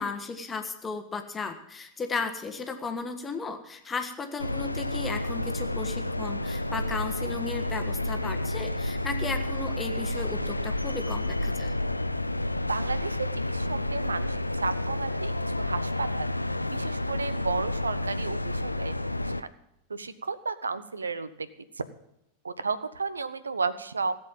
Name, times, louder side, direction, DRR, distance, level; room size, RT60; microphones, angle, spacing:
voice 1, 0.0-11.7, left 4 dB, 15° left, 6 dB, 1.4 m, -35 dB
sound 1, 4.4-19.4, left 1 dB, 85° left, 0.5 m, -30 dB
voice 2, 12.7-16.3 16.7-18.9 19.2-19.5 19.9-21.5 22.4-24.1, right 4 dB, 75° right, 15 dB, 0.8 m, -33 dB
17.0 x 7.9 x 7.4 m, 0.80 s
figure-of-eight pair, 90°, 0 cm